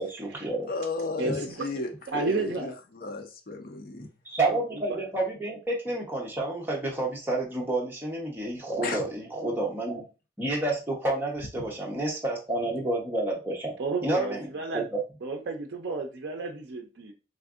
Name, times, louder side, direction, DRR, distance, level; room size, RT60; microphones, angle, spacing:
voice 1, 0.0-0.7 1.2-1.3 4.3-10.0 10.4-13.7 14.0-14.5 14.7-14.9, right 2 dB, 10° right, 0.7 m, -29 dB
voice 2, 0.7-4.1 8.8-9.0 11.6-11.7, left 3 dB, 45° left, 0.5 m, -34 dB
voice 3, 1.2-1.7 2.1-2.7 4.5-4.6 4.9-5.0 13.8-14.9 15.2-17.1, right 3 dB, 55° right, 0.4 m, -32 dB
3.4 x 2.5 x 2.4 m
head